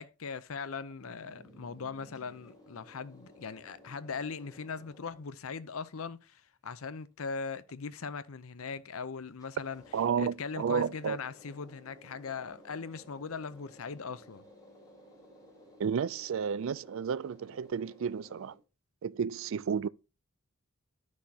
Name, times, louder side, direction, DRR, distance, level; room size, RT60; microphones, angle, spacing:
voice 1, 0.0-9.8 10.2-14.4, left 5 dB, 75° left, 0.7 m, -40 dB
sound 1, 1.0-5.6 9.3-18.5, left 1 dB, 20° left, 4.1 m, -56 dB
voice 2, 9.9-11.2 15.8-18.5 19.0-19.9, right 7 dB, 65° right, 0.4 m, -32 dB
11.5 x 6.4 x 2.8 m
head